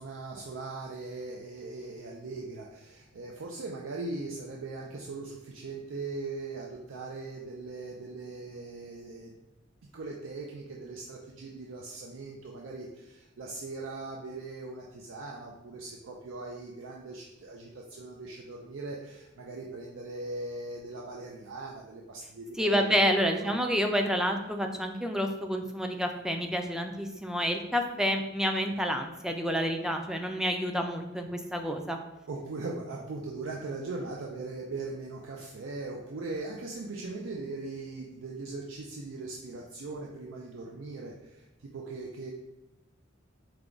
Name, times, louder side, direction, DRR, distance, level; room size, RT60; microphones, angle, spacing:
voice 1, 0.0-9.4 9.9-23.0 23.4-23.5 32.3-42.3, right 3 dB, 90° right, -1 dB, 0.5 m, -40 dB
voice 2, 22.6-32.0, equal, 5° right, 4 dB, 0.3 m, -29 dB
4.7 x 2.2 x 3.7 m, 0.97 s
head